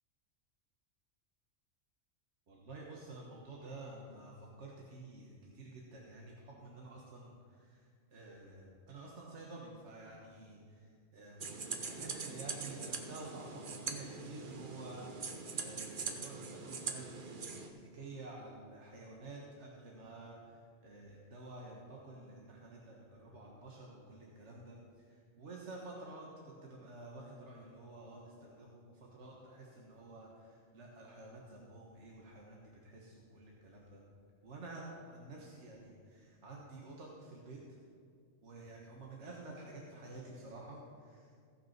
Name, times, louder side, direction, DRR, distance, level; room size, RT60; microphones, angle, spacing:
voice 1, 2.5-26.3 26.7-34.0 34.4-37.6 38.4-41.5, right 2 dB, 60° right, -2 dB, 1.7 m, -51 dB
sound 1, 11.4-17.7, right 4 dB, 45° right, 1.0 m, -42 dB
16.0 x 6.0 x 5.9 m, 2.1 s
omnidirectional pair, 1.4 m